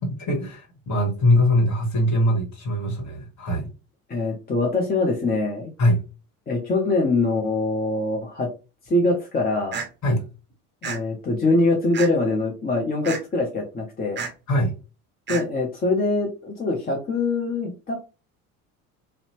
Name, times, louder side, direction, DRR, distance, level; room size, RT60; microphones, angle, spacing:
voice 1, 0.2-3.7 5.8-6.0 10.0-10.2 14.5-14.7, left 1 dB, 40° left, 2 dB, 1.3 m, -22 dB
voice 2, 4.1-5.7 6.5-8.5 8.9-9.8 10.8-14.2 15.3-18.0, left 2 dB, 20° left, 0 dB, 0.6 m, -23 dB
sound 1, 9.7-9.9 10.8-11.0 11.9-12.3 13.0-13.2 14.2-14.3 15.3-15.4, right 6 dB, 25° right, 0.6 m, -30 dB
2.7 x 2.0 x 2.9 m, 0.31 s
figure-of-eight pair, 60°, 44 cm